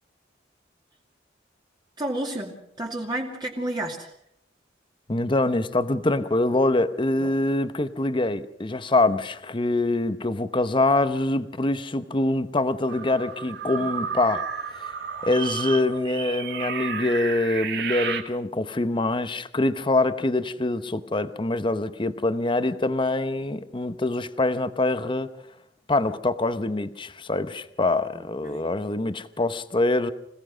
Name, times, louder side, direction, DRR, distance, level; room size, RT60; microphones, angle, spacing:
voice 1, 2.0-4.1 7.2-7.3 13.8-13.9 28.1-28.7, right 1 dB, 25° right, -1 dB, 2.4 m, -31 dB
voice 2, 5.1-14.5 14.8-14.9 15.2-25.3 25.9-30.1, left 2 dB, 25° left, 12 dB, 0.8 m, -24 dB
sound 1, 12.9-18.2, right 6 dB, 60° right, 2.0 m, -32 dB
26.5 x 17.0 x 6.3 m, 0.75 s
head